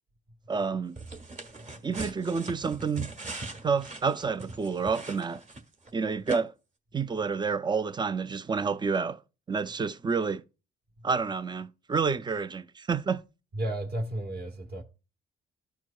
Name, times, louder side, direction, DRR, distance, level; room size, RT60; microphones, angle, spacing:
voice 1, 0.5-0.9 1.8-3.1 3.6-5.4 5.9-6.5 6.9-9.2 9.5-10.4 11.0-13.2, right 5 dB, 20° right, 0.4 m, -29 dB
sound 1, 1.0-5.9 6.3-6.4, right 2 dB, 40° right, 1.4 m, -40 dB
voice 2, 13.5-14.8, right 1 dB, 55° right, 1.5 m, -33 dB
13.5 x 4.6 x 2.3 m
cardioid pair, 90°, 20 cm